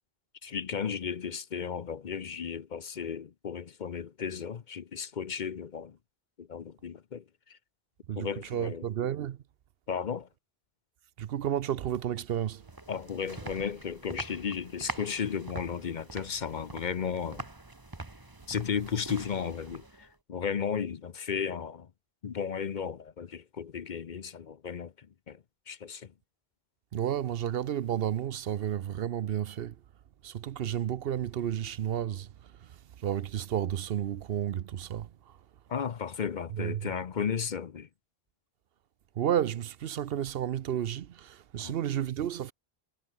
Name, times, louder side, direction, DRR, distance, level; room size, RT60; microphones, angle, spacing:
voice 1, 0.4-6.0 6.4-7.6 8.2-8.9 9.9-10.3 12.9-17.5 18.5-21.9 22.2-26.1 35.7-37.9 41.6-41.7, left 7 dB, 50° left, 0.8 m, -34 dB
voice 2, 8.1-9.4 11.2-12.6 26.9-29.8 30.2-35.4 36.5-36.9 39.2-42.5, right 10 dB, 70° right, 0.8 m, -32 dB
sound 1, 12.3-20.2, right 2 dB, 20° right, 1.4 m, -44 dB
omnidirectional pair, 1.1 m